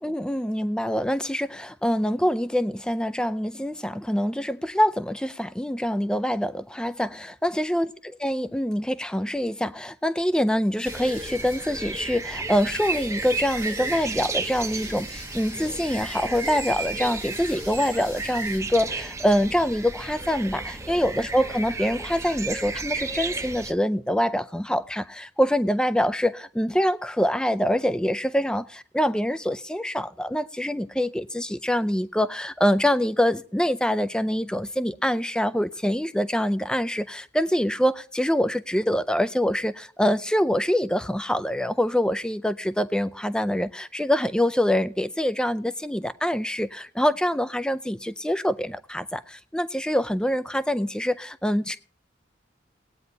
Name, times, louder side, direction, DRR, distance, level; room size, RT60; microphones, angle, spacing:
voice 1, 0.0-7.9 8.2-51.8, equal, 5° left, 13 dB, 0.4 m, -25 dB
sound 1, 10.6-18.6, left 3 dB, 65° left, 4.9 m, -46 dB
sound 2, 10.8-23.7, right 3 dB, 15° right, 0.8 m, -33 dB
19.5 x 9.2 x 2.8 m, 0.43 s
head